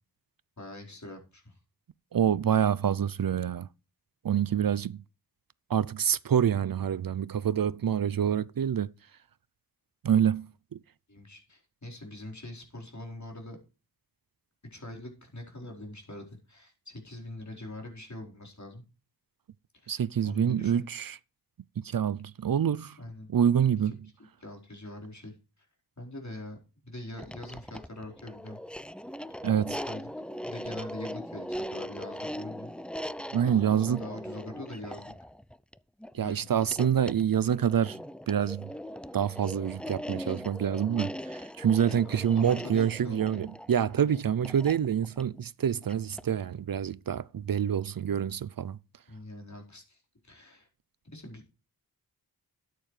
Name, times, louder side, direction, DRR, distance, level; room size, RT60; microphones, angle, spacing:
voice 1, 0.6-1.6 11.1-13.6 14.7-18.8 19.8-19.9 20.2-20.9 23.0-23.3 24.4-25.7 26.0-26.6 26.8-28.6 29.9-30.1 30.4-32.7 33.4-35.1 36.1-36.5 41.9-42.0 42.3-43.5 49.1-50.7 51.1-51.4, left 1 dB, 45° left, 4.5 m, -43 dB
voice 2, 2.1-3.7 4.2-5.0 5.7-8.9 10.0-10.8 19.9-21.2 21.8-23.0 23.3-24.0 29.4-29.8 33.3-34.0 36.1-38.0 38.3-38.7 39.1-48.8, right 9 dB, 65° right, 0.5 m, -27 dB
sound 1, 27.2-46.4, equal, 5° left, 0.4 m, -40 dB
13.5 x 9.3 x 3.3 m
wide cardioid pair, 55°, 38 cm